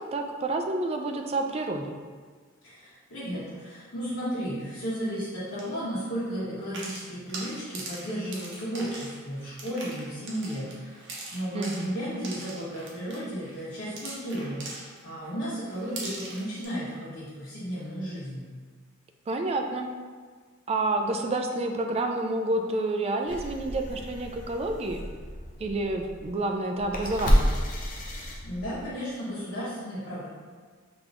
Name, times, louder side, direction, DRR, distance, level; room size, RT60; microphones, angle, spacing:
voice 1, 0.0-2.0 11.5-11.9 19.3-19.9 20.7-25.0 25.6-27.6, right 2 dB, 30° right, 4 dB, 0.3 m, -29 dB
voice 2, 2.6-18.4 28.1-30.3, equal, 80° left, -12 dB, 1.3 m, -34 dB
sound 1, 5.5-5.7 6.6-15.3 15.7-16.6, right 2 dB, 60° right, 0.9 m, -41 dB
sound 2, 23.3-28.9, equal, 40° left, 0.6 m, -30 dB
3.8 x 2.9 x 3.7 m, 1.5 s
head